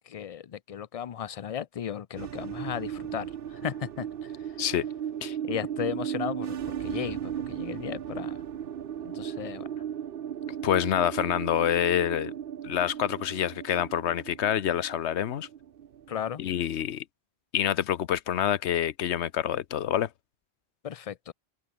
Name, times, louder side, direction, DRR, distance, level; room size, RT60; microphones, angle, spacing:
voice 1, 0.1-4.3 5.4-8.4 9.0-9.7 16.1-16.4 20.8-21.3, left 9 dB, 50° left, 0.4 m, -35 dB
sound 1, 2.2-16.8, right 9 dB, 60° right, 0.9 m, -36 dB
voice 2, 10.6-12.3 12.6-15.5 16.4-17.0 17.5-20.1, left 10 dB, 80° left, 1.0 m, -27 dB
open air
omnidirectional pair, 1.1 m